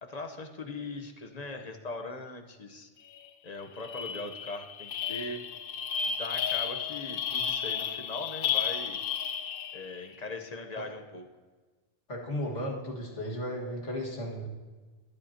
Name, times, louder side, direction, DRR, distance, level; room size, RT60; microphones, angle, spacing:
voice 1, 0.0-2.9 3.4-5.4 6.0-9.0 9.7-11.3, left 3 dB, 40° left, 5 dB, 1.0 m, -40 dB
sound 1, 3.1-3.3 3.6-10.0, left 8 dB, 60° left, 0.7 m, -33 dB
voice 2, 12.1-14.5, equal, 85° left, -2 dB, 2.3 m, -35 dB
23.0 x 8.3 x 2.9 m, 1.3 s
omnidirectional pair, 1.2 m